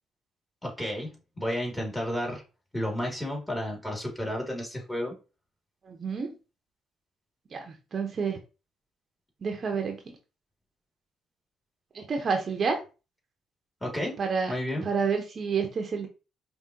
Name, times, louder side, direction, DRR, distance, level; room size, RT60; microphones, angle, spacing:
voice 1, 0.6-1.1 1.4-2.4 2.7-5.1 13.8-14.2 14.5-14.8, left 1 dB, 10° left, -1 dB, 2.5 m, -31 dB
voice 2, 5.8-6.3 7.5-8.4 9.4-10.0 11.9-12.8 14.2-14.5 14.8-16.1, right 5 dB, 50° right, 3 dB, 0.8 m, -29 dB
5.1 x 2.8 x 2.8 m, 0.31 s
supercardioid pair, 60°, 0 cm